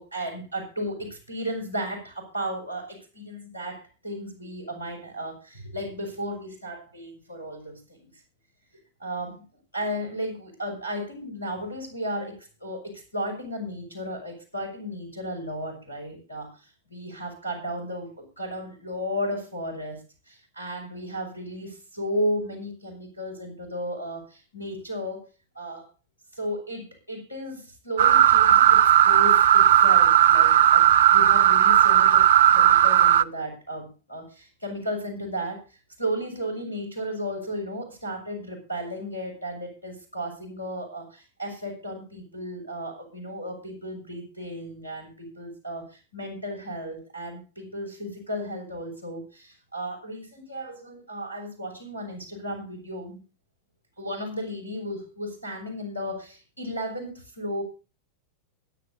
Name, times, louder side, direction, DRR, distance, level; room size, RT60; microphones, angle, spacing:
voice 1, 0.0-8.1 9.0-9.4 9.7-18.1 18.4-20.0 20.3-25.2 25.5-25.9 26.3-32.3 32.5-53.2 54.0-57.6, equal, 85° left, 4 dB, 6.6 m, -34 dB
sound 1, 28.0-33.2, right 11 dB, 60° right, 0.5 m, -16 dB
23.0 x 10.5 x 2.7 m, 0.33 s
figure-of-eight pair, 90°, 0 cm